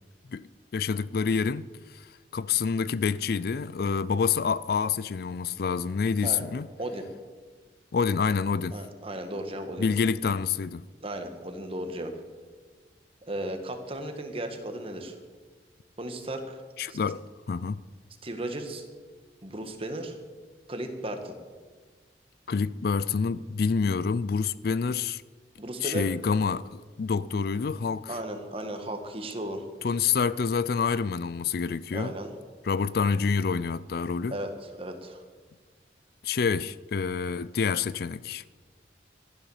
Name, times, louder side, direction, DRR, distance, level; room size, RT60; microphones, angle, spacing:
voice 1, 0.7-1.7 1.9-2.1 2.3-6.7 7.9-8.8 9.8-10.8 16.8-17.8 22.5-25.2 25.8-28.2 29.8-32.1 32.6-34.4 36.2-38.4, left 5 dB, 60° left, 0.4 m, -27 dB
voice 2, 8.7-9.9 11.0-12.1 13.3-15.2 16.0-16.6 16.9-17.0 18.2-18.8 19.4-20.2 20.7-21.4 25.6-26.1 28.1-29.6 31.9-32.3 34.3-35.2, right 1 dB, 30° right, 1.7 m, -35 dB
14.0 x 11.0 x 7.2 m
head